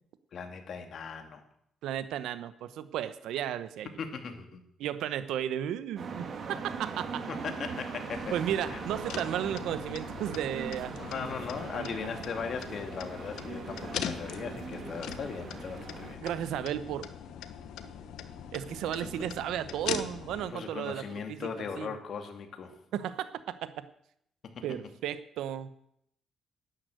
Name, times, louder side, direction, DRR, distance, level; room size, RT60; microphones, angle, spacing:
voice 1, 0.3-1.4 4.0-4.6 7.3-8.3 8.7-8.8 11.0-16.2 18.9-19.1 20.4-22.8 24.4-24.6, left 6 dB, 60° left, 6 dB, 2.4 m, -38 dB
voice 2, 1.8-4.0 4.8-7.2 8.3-11.3 11.7-11.9 16.2-17.1 18.5-21.5 21.8-21.9 22.9-23.9 24.6-25.7, right 10 dB, 85° right, 13 dB, 1.0 m, -34 dB
sound 1, 6.0-16.1, right 5 dB, 55° right, 2.2 m, -40 dB
sound 2, 8.1-20.5, left 9 dB, 85° left, 1.1 m, -41 dB
11.5 x 10.0 x 7.9 m, 0.73 s
cardioid pair, 90°, 0 cm